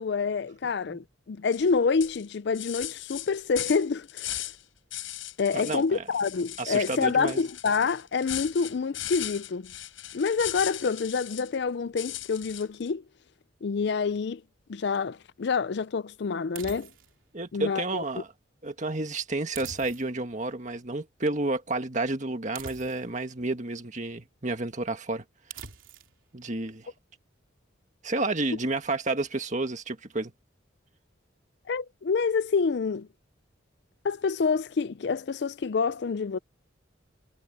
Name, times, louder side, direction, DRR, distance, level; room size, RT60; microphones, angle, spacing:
voice 1, 0.0-4.5 5.4-9.7 10.1-13.0 13.6-14.4 14.7-16.9 17.5-18.0 31.7-33.1 34.0-36.4, left 5 dB, 55° left, 0.4 m, -27 dB
aluminium foil, 1.5-1.7 2.0-4.6 4.9-5.8 6.1-11.6 12.0-12.9, left 13 dB, 85° left, 5.3 m, -38 dB
voice 2, 5.5-6.0 6.6-7.4 17.3-18.3 18.6-25.2 26.3-26.9 28.0-30.3, right 2 dB, 40° right, 1.7 m, -30 dB
sound 1, 16.6-17.2 19.5-20.3 22.6-23.2 25.5-26.1, right 6 dB, 85° right, 3.2 m, -43 dB
head